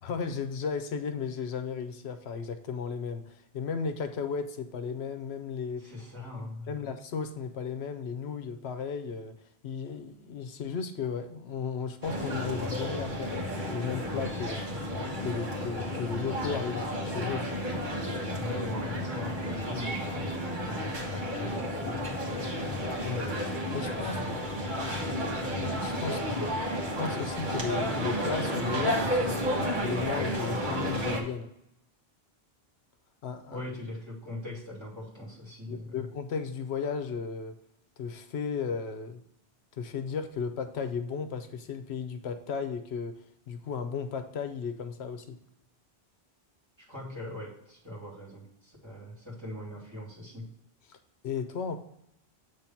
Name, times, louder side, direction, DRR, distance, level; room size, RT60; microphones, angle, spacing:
voice 1, 0.0-5.9 6.7-9.3 9.6-14.8 15.2-17.5 23.0-23.3 23.7-24.2 25.6-26.2 27.0-31.5 33.2-33.6 35.7-37.6 38.0-39.2 39.7-45.4 50.9-51.0 51.2-51.8, left 6 dB, 80° left, 8 dB, 1.0 m, -35 dB
voice 2, 5.8-6.8 18.3-20.3 20.7-22.8 23.8-25.3 26.0-26.5 33.5-36.1 46.8-50.5, left 1 dB, 25° right, -5 dB, 2.8 m, -41 dB
sound 1, 12.0-31.2, equal, 50° right, 1.6 m, -32 dB
8.2 x 3.4 x 5.7 m, 0.77 s
omnidirectional pair, 1.1 m